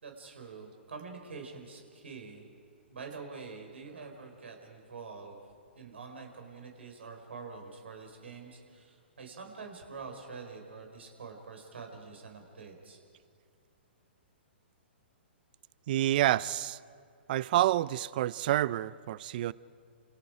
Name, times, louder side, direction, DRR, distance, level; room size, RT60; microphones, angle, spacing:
voice 1, 0.0-2.5 2.9-5.4 5.7-13.0, right 4 dB, 75° right, 3 dB, 4.6 m, -46 dB
voice 2, 15.9-16.8 17.3-19.5, right 14 dB, 50° right, 21 dB, 0.5 m, -28 dB
29.5 x 27.0 x 5.0 m, 2.3 s
hypercardioid pair, 120°, 6 cm